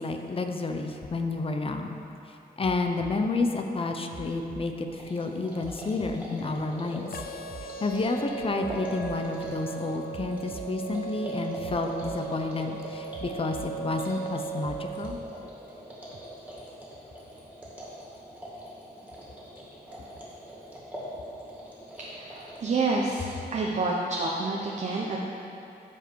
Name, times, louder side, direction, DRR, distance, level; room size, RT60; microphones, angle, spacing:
voice 1, 0.0-2.0 2.6-7.1 7.8-15.2, left 3 dB, 35° left, 4 dB, 0.7 m, -30 dB
sound 1, 2.6-3.2 4.1-4.7 5.6-6.2 7.1-7.7 8.6-9.2 10.1-10.7 11.6-12.2 13.1-13.7 14.6-15.2 16.1-16.2, right 5 dB, 30° right, 0.5 m, -44 dB
sound 2, 4.9-23.5, equal, 10° right, 2.4 m, -43 dB
sound 3, 7.1-15.1, right 7 dB, 65° left, 0.4 m, -38 dB
voice 2, 22.0-23.2 23.5-25.2, right 3 dB, 45° right, -2 dB, 0.8 m, -28 dB
14.0 x 5.0 x 4.6 m, 2.8 s
wide cardioid pair, 125°, 16 cm